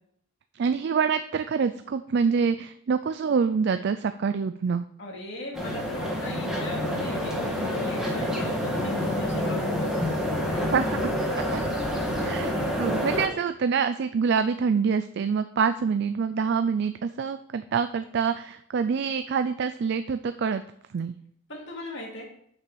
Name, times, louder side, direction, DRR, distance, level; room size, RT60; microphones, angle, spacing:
voice 1, 0.5-4.8 10.7-10.9 11.5-11.6 12.2-20.6 20.9-21.1, right 6 dB, 50° right, 10 dB, 0.3 m, -26 dB
voice 2, 5.0-9.9 10.5-10.8 21.5-22.2, left 1 dB, 55° left, -2 dB, 2.5 m, -38 dB
sound 1, 5.5-13.3, left 1 dB, ahead, 1.7 m, -28 dB
6.9 x 5.7 x 6.2 m, 0.69 s
head